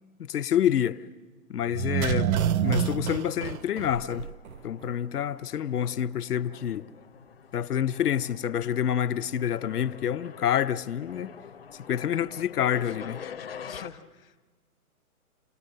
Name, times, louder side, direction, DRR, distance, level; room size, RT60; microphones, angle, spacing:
voice 1, 0.2-1.0 1.5-4.3 4.6-6.8 7.5-11.3 11.7-13.2, left 9 dB, 80° left, 0.8 m, -28 dB
sound 1, 1.7-4.6 4.8-4.9, right 10 dB, 65° right, 0.6 m, -27 dB
sound 2, 2.3-13.9, left 7 dB, 40° left, 0.6 m, -47 dB
voice 2, 12.7-14.5, left 7 dB, 60° left, 1.3 m, -45 dB
28.5 x 19.0 x 6.5 m
hypercardioid pair, 175°, 45 cm